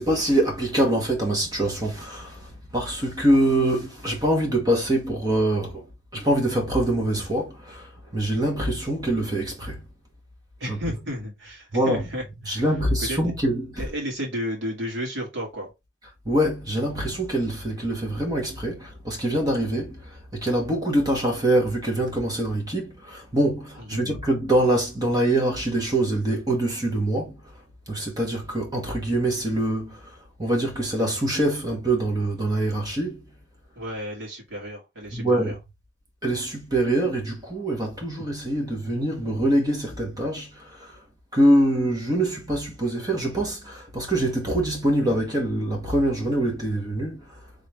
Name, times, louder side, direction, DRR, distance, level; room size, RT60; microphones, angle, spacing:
voice 1, 0.0-5.9 6.1-9.8 10.7-10.8 11.7-12.1 12.4-13.8 16.2-27.5 27.9-33.2 35.1-35.5 36.2-41.0 41.3-47.4, right 1 dB, 20° right, 1.3 m, -24 dB
voice 2, 10.6-12.7 13.1-13.2 13.8-15.7 23.9-24.1 33.8-35.6, equal, 70° right, 2.3 m, -33 dB
3.7 x 3.2 x 3.4 m
head